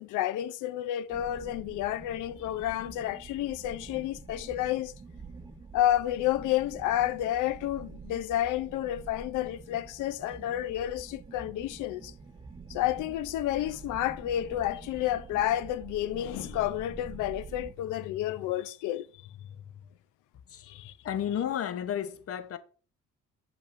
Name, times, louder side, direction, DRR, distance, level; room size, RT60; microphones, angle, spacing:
voice 1, 0.0-4.9 5.7-12.1 12.7-19.1 20.6-21.0, left 13 dB, 90° left, 0.5 m, -30 dB
sound 1, 1.1-17.7, right 4 dB, 15° right, 0.5 m, -47 dB
voice 2, 21.0-22.6, left 9 dB, 50° left, 0.7 m, -32 dB
7.0 x 5.3 x 2.5 m
cardioid pair, 90°, 30 cm